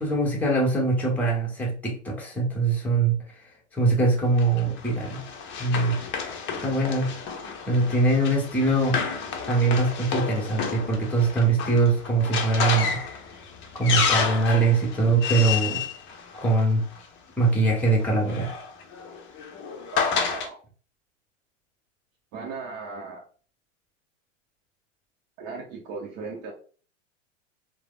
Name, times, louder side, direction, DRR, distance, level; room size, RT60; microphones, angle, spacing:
voice 1, 0.0-3.2 3.7-5.3 5.6-6.0 6.6-7.1 7.7-13.2 13.7-15.8 16.3-16.8 17.4-18.5, right 3 dB, 5° left, -1 dB, 0.8 m, -23 dB
Run, 4.4-17.0 18.0-20.5, left 6 dB, 30° left, 0.5 m, -30 dB
voice 2, 19.9-20.6 22.3-23.2 25.4-26.5, right 4 dB, 45° right, -1 dB, 0.7 m, -36 dB
3.2 x 2.0 x 2.3 m, 0.41 s
hypercardioid pair, 95°, 38 cm